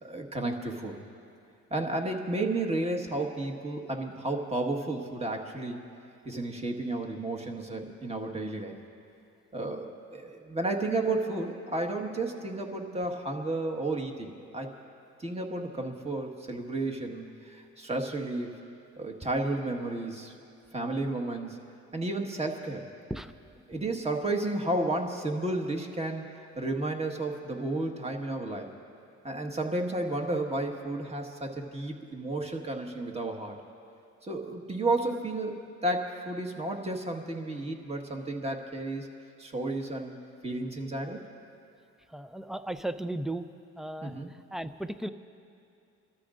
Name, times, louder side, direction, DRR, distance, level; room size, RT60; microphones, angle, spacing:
voice 1, 0.0-1.0 1.7-5.8 6.2-8.8 9.5-14.7 15.2-18.5 19.0-20.3 20.7-21.6 21.9-22.8 23.7-26.2 26.5-28.7 29.2-33.6 34.2-39.1 39.4-40.2 40.4-41.2 44.0-44.3, right 2 dB, 20° right, 2 dB, 1.6 m, -32 dB
voice 2, 42.1-43.4 43.8-45.1, right 1 dB, ahead, 11 dB, 0.5 m, -36 dB
28.0 x 13.5 x 2.5 m, 2.5 s
cardioid pair, 90°, 30 cm